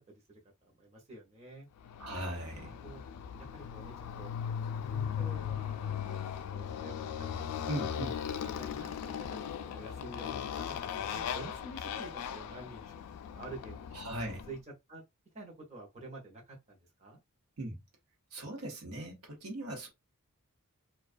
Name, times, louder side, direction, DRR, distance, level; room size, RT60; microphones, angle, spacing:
voice 1, 0.1-1.7 2.6-3.0 3.5-4.3 4.8-7.5 8.0-14.6 14.9-15.0 15.3-17.2, right 2 dB, 30° right, 0.7 m, -49 dB
Motorcycle, 1.8-14.6, left 8 dB, 90° left, 0.3 m, -38 dB
voice 2, 2.0-2.7 7.7-8.2 13.9-14.5 17.6-17.8 18.3-19.9, right 1 dB, 80° right, 0.9 m, -39 dB
2.3 x 2.2 x 2.4 m
head